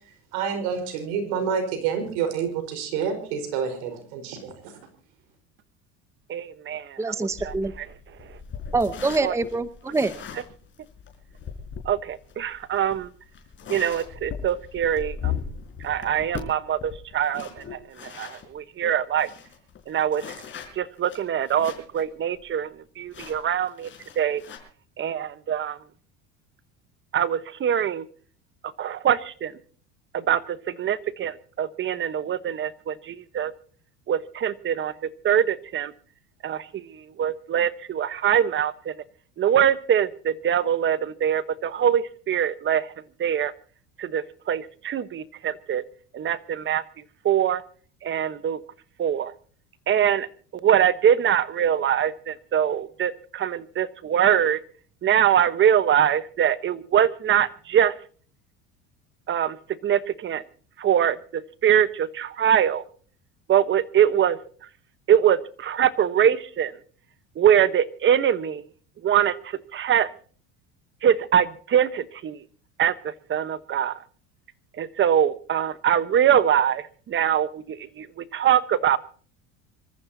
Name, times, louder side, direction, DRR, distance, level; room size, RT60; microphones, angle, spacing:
voice 1, 0.3-4.7, right 7 dB, 80° right, 4.7 m, -28 dB
voice 2, 6.3-7.9 9.2-9.3 11.8-13.1 13.7-15.3 15.8-19.3 19.9-20.4 20.8-22.7 23.0-23.9 24.2-24.4 25.0-25.8 27.1-28.0 28.8-29.5 30.1-33.5 34.1-34.9 35.2-35.9 36.4-38.9 39.4-42.9 43.2-43.5 44.0-45.8 46.1-46.8 47.2-47.6 48.0-48.6 49.0-49.3 49.9-50.3 50.5-54.6 55.0-57.9 59.3-59.6 59.8-60.4 60.8-62.8 63.5-64.4 65.1-66.7 67.4-68.6 69.0-70.1 71.0-72.4 72.8-74.0 74.8-79.0, right 9 dB, 35° right, 1.1 m, -23 dB
voice 3, 7.0-7.7 8.7-10.1, right 3 dB, 10° right, 0.9 m, -25 dB
sound 1, 7.3-18.5 18.9-19.0 19.2-22.0 22.3-22.4 23.1-24.6, left 7 dB, 35° left, 5.0 m, -38 dB
26.0 x 14.0 x 2.8 m
supercardioid pair, 110°, 32 cm